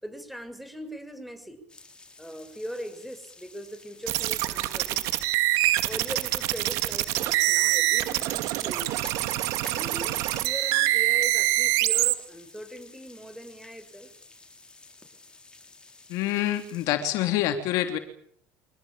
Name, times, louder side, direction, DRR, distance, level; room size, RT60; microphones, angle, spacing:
voice 1, 0.0-1.6 2.2-5.1 5.8-8.9 9.7-14.1, equal, ahead, 10 dB, 6.4 m, -40 dB
sound 1, 1.7-16.9, left 3 dB, 15° left, 6.7 m, -51 dB
sound 2, 4.1-12.1, right 17 dB, 65° right, 2.3 m, -25 dB
voice 2, 16.1-18.0, left 12 dB, 65° left, 7 dB, 3.3 m, -26 dB
25.0 x 19.5 x 9.1 m, 0.66 s
supercardioid pair, 100°, 6 cm